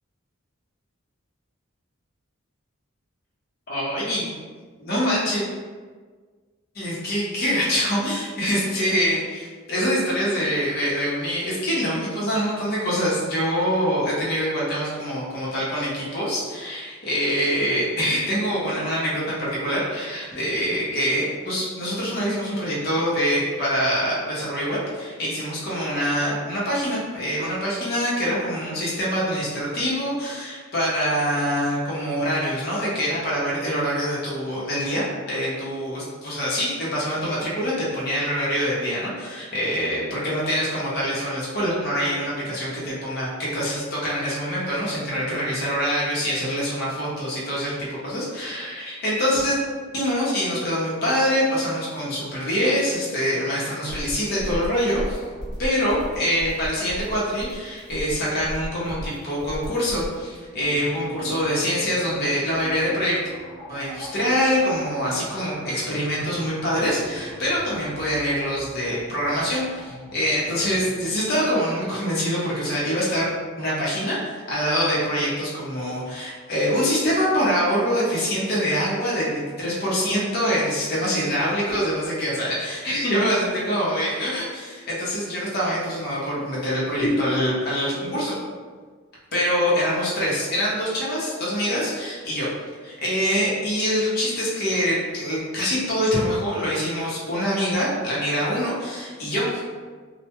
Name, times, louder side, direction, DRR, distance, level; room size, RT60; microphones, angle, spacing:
voice 1, 3.7-4.4 4.8-5.4 6.7-49.5 49.9-55.2 55.6-63.2 63.7-73.3 73.6-88.4 89.3-92.5 92.8-99.6, equal, 45° left, -6 dB, 0.7 m, -25 dB
sound 1, 53.8-60.1, equal, 20° right, 0.8 m, -34 dB
sound 2, 60.5-71.4, equal, 80° right, 0.7 m, -42 dB
2.1 x 2.1 x 2.8 m, 1.5 s
head